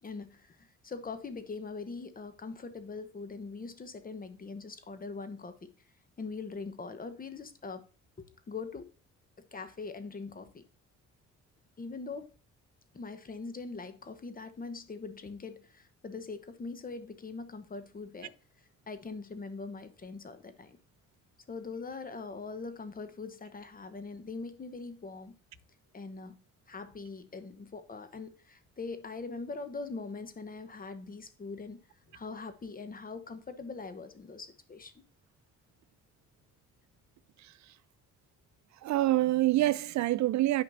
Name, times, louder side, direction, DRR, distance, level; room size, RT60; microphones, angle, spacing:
voice 1, 0.0-5.7 6.2-7.9 8.2-8.9 9.4-10.6 11.8-12.3 12.9-18.3 18.9-20.8 21.5-25.4 25.9-31.8 32.1-34.9, left 4 dB, 30° left, 1.0 m, -42 dB
voice 2, 37.4-37.7 38.8-40.6, right 16 dB, 70° right, 0.5 m, -27 dB
9.3 x 5.1 x 2.6 m
cardioid pair, 90°, 30 cm